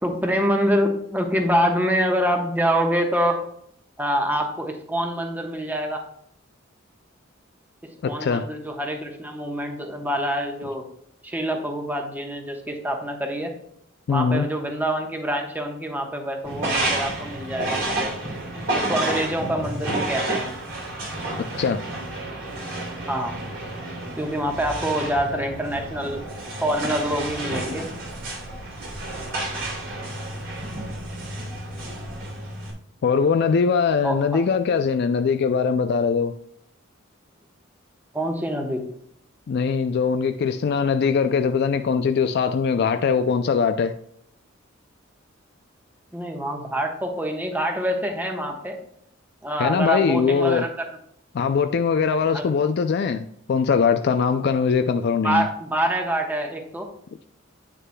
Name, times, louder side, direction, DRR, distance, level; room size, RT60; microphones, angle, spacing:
voice 1, 0.0-3.4 4.0-6.0 7.8-10.8 11.2-13.5 14.1-18.1 18.7-20.5 23.1-23.3 24.2-26.2 26.6-27.8 34.0-34.4 38.1-38.8 46.1-48.8 49.4-50.7 52.3-52.5 55.2-56.9, equal, 10° right, 3 dB, 1.1 m, -25 dB
voice 2, 8.0-8.4 14.1-14.5 21.6-21.8 33.0-36.3 39.5-43.9 49.6-50.7 51.3-55.5, left 6 dB, 55° left, 8 dB, 0.3 m, -21 dB
sound 1, 16.4-32.7, right 2 dB, 70° right, 2.9 m, -30 dB
9.2 x 6.6 x 2.2 m, 0.70 s
head